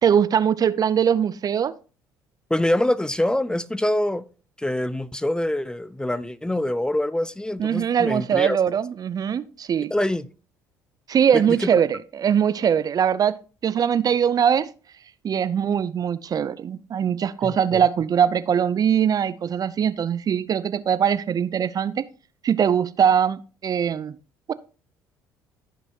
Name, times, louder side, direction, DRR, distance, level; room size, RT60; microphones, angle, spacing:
voice 1, 0.0-1.7 7.6-9.9 11.1-13.3 13.6-14.7 15.2-22.1 22.4-24.2 24.5-24.6, right 8 dB, 45° right, 0.6 m, -21 dB
voice 2, 2.5-4.3 4.6-8.6 9.9-10.3 17.4-17.8, left 1 dB, 10° left, 0.5 m, -25 dB
15.0 x 5.5 x 2.9 m
hypercardioid pair, 60°, 9 cm